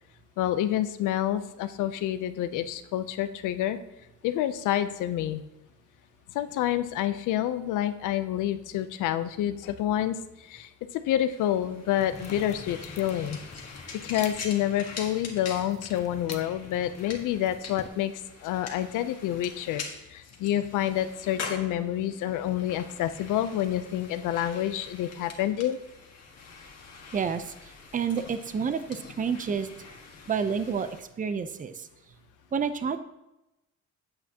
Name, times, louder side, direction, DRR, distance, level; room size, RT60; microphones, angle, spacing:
voice 1, 0.4-3.8 4.2-5.4 6.3-13.4 14.0-19.8 20.1-25.8, left 12 dB, 90° left, 12 dB, 0.6 m, -28 dB
sound 1, 11.2-31.0, left 4 dB, 55° left, 1.5 m, -44 dB
sound 2, 12.0-17.9, left 4 dB, 25° left, 0.6 m, -47 dB
voice 2, 27.1-29.7 30.3-31.9 32.5-33.0, right 6 dB, 25° right, 11 dB, 0.5 m, -29 dB
8.6 x 8.1 x 2.8 m, 0.95 s
cardioid pair, 90°, 30 cm